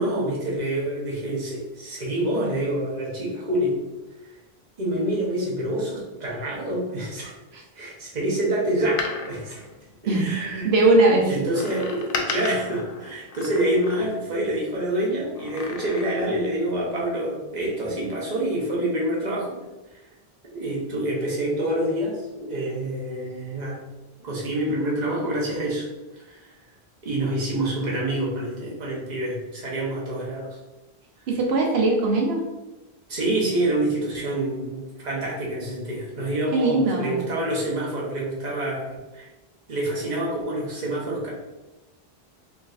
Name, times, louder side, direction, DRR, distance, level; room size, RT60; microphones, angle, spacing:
voice 1, 0.0-3.8 4.8-7.3 7.7-9.6 10.0-10.7 11.3-19.6 20.5-23.8 24.2-25.9 26.3-26.5 27.0-30.6 33.1-39.3 39.7-41.3, right 1 dB, 45° right, -4 dB, 1.1 m, -27 dB
Door, 8.8-10.6 11.5-14.4 15.3-16.5 16.8-16.9, left 4 dB, 60° left, 0.8 m, -35 dB
voice 2, 10.6-11.3 31.3-32.5 36.5-37.2, right 2 dB, 85° right, 0 dB, 0.9 m, -20 dB
4.9 x 3.1 x 2.4 m, 1.1 s
omnidirectional pair, 1.0 m